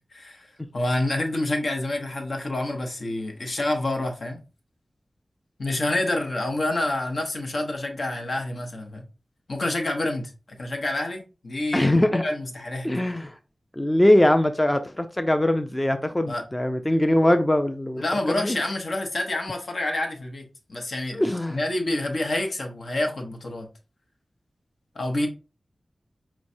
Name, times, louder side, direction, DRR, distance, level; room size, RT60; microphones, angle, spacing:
voice 1, 0.1-0.5 0.7-4.4 5.6-9.0 9.5-10.3 10.6-12.9 16.3-16.4 18.0-21.2 21.5-23.7 24.9-25.3, left 1 dB, 75° left, 0.9 m, -28 dB
voice 2, 11.7-12.2 12.8-13.3 13.7-18.6 21.1-21.6, left 1 dB, 20° left, 0.4 m, -22 dB
4.5 x 3.1 x 2.6 m
wide cardioid pair, 60°, 0 cm